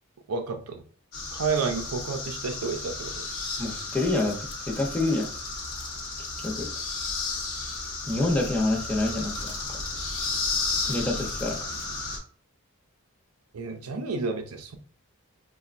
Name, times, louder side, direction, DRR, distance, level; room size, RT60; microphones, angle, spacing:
voice 1, 0.3-0.8 1.3-3.3 13.5-14.8, right 4 dB, 90° right, 5 dB, 0.6 m, -30 dB
sound 1, 1.1-12.2, left 3 dB, 65° left, 0.8 m, -33 dB
voice 2, 3.6-5.3 6.4-6.7 8.1-9.5 10.9-11.6, left 2 dB, 5° left, -1 dB, 0.7 m, -27 dB
4.3 x 2.3 x 2.5 m, 0.43 s
head